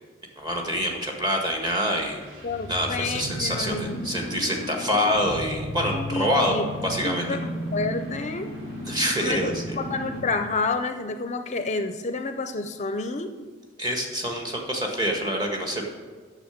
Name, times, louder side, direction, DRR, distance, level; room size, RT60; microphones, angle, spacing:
voice 1, 0.4-2.2 2.7-6.5 6.8-7.3 8.8-9.8 13.8-15.8, equal, 20° right, 1 dB, 1.7 m, -26 dB
sound 1, 1.8-10.5, equal, 70° right, 3.8 m, -35 dB
voice 2, 2.4-4.0 5.9-6.7 7.0-8.5 9.2-13.3, left 3 dB, 35° left, 8 dB, 0.5 m, -29 dB
8.6 x 6.9 x 7.2 m, 1.5 s
head